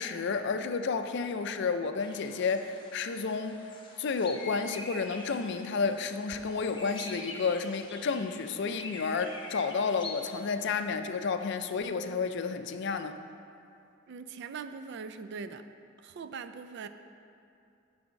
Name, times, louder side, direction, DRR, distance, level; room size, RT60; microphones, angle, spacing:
voice 1, 0.0-3.6 4.0-13.2, left 5 dB, 60° left, 8 dB, 0.4 m, -31 dB
sound 1, 2.0-10.6, left 2 dB, 25° left, 0.8 m, -45 dB
voice 2, 14.1-15.7 16.0-16.9, right 5 dB, 60° right, 10 dB, 0.4 m, -41 dB
10.0 x 3.5 x 6.3 m, 2.6 s
head